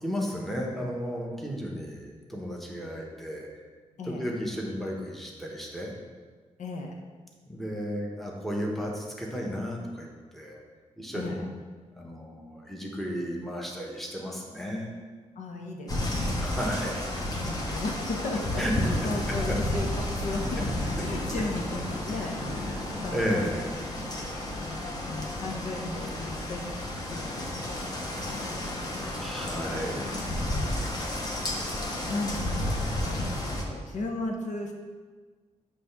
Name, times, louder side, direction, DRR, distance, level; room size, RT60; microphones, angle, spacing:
voice 1, 0.0-3.5 4.0-5.9 7.5-10.1 10.3-10.6 11.0-11.4 12.0-14.9 16.4-17.0 18.6-18.7 19.5-19.6 22.7-22.8 23.1-23.8 29.2-30.3, equal, ahead, -2 dB, 1.1 m, -33 dB
voice 2, 4.0-4.3 6.6-6.9 11.1-11.5 15.4-16.5 17.4-23.4 24.5-29.2 30.5-31.1 32.1-34.7, left 2 dB, 85° left, 1 dB, 0.9 m, -36 dB
sound 1, 15.9-33.6, left 1 dB, 30° left, 1.0 m, -32 dB
7.8 x 3.2 x 5.8 m, 1.5 s
wide cardioid pair, 140°, 12 cm